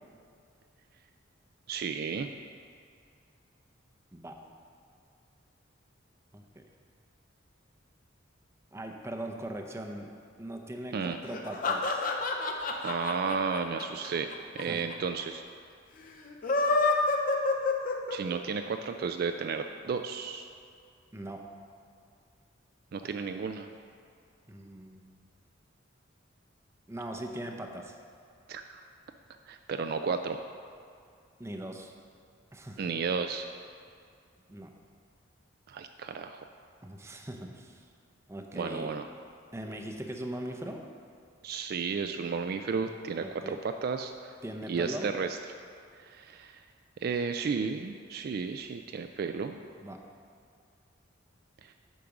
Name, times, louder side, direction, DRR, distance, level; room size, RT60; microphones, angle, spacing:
voice 1, 1.7-2.3 10.9-11.2 12.8-15.4 18.1-20.5 22.9-23.7 28.5-28.8 29.5-30.4 32.8-33.5 35.7-36.5 38.6-39.1 41.4-44.3 44.7-45.4 46.0-46.6 47.0-49.6 51.6-51.7, right 5 dB, 50° right, 7 dB, 0.3 m, -33 dB
voice 2, 6.3-6.6 8.7-10.1 10.4-12.1 14.7-14.8 21.1-21.4 24.5-25.2 26.9-28.0 31.4-31.9 32.5-32.8 34.5-34.7 36.8-37.8 38.3-38.9 39.5-40.8 43.2-43.6 44.4-45.1 49.8-50.0, right 1 dB, 15° right, 3 dB, 0.6 m, -40 dB
sound 1, 11.3-14.6 14.9-15.0 15.2-15.3 16.3-18.4, left 3 dB, 45° left, 0.7 m, -28 dB
8.5 x 5.2 x 5.9 m, 2.3 s
head